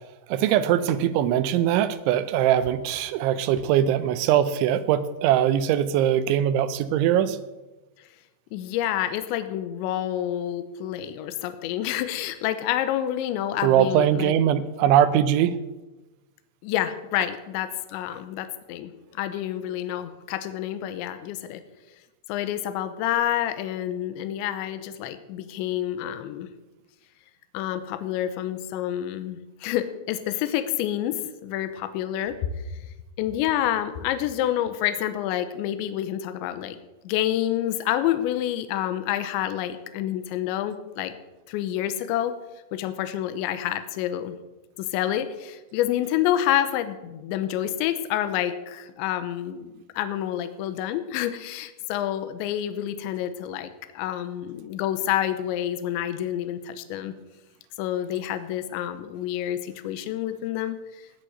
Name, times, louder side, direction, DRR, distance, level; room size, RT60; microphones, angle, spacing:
voice 1, 0.3-7.4 13.6-15.6, right 10 dB, 85° right, 13 dB, 3.2 m, -21 dB
voice 2, 8.5-14.3 16.6-18.9 19.2-21.6 22.3-26.5 27.5-32.3 33.2-36.8 37.0-41.1 41.5-42.3 42.7-44.3 44.8-57.1 57.8-60.8, left 12 dB, 80° left, 10 dB, 3.1 m, -28 dB
18.5 x 6.8 x 7.9 m, 1.1 s
omnidirectional pair, 5.4 m